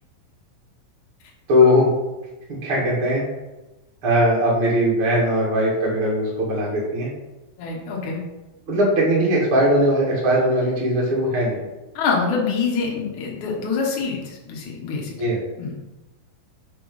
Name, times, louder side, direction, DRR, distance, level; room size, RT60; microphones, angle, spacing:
voice 1, 1.5-1.9 2.6-3.2 4.0-7.1 8.7-11.6 15.2-15.4, equal, 40° right, -5 dB, 2.0 m, -19 dB
voice 2, 7.6-8.2 11.9-15.1 15.6-15.8, left 5 dB, 70° left, -2 dB, 1.8 m, -25 dB
7.2 x 4.6 x 5.5 m, 1.1 s
omnidirectional pair, 5.6 m